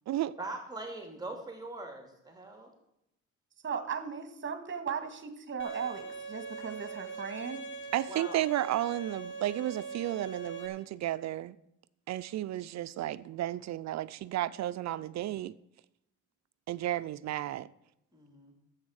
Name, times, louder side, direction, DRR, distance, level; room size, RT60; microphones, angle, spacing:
voice 1, 0.4-2.7 8.1-8.4 18.1-18.5, right 2 dB, 15° right, 2.4 m, -42 dB
voice 2, 3.6-7.6, right 6 dB, 40° right, 1.7 m, -37 dB
Bowed string instrument, 5.6-10.7, right 4 dB, 40° left, 2.1 m, -42 dB
voice 3, 7.9-11.6 12.1-15.5 16.7-17.7, right 13 dB, 65° right, 0.5 m, -33 dB
11.5 x 7.8 x 6.4 m
cardioid pair, 90°, 30 cm